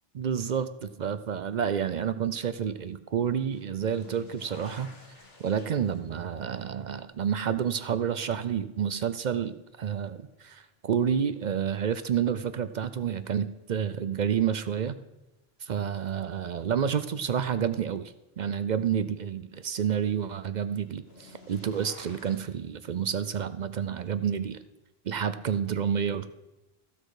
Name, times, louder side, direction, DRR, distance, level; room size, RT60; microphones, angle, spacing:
voice 1, 0.1-4.9 5.4-15.0 15.6-24.6 25.0-26.3, right 8 dB, 55° right, 13 dB, 0.6 m, -29 dB
sound 1, 3.5-10.5 11.0-11.7 13.3-13.4 14.9-15.0 20.7-22.4, left 3 dB, 75° left, 1.8 m, -53 dB
14.5 x 6.4 x 4.8 m, 1.0 s
omnidirectional pair, 1.0 m